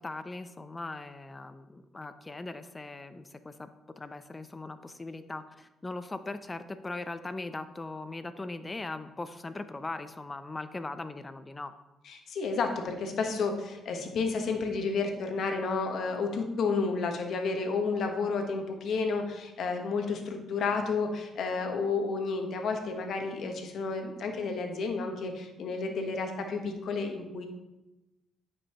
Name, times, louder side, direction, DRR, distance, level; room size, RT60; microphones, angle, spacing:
voice 1, 0.0-3.7 4.0-11.7, left 2 dB, 20° left, 11 dB, 0.5 m, -39 dB
voice 2, 12.1-27.5, left 4 dB, 65° left, 4 dB, 1.1 m, -31 dB
9.5 x 5.4 x 2.9 m, 1.0 s
cardioid pair, 90°, 0 cm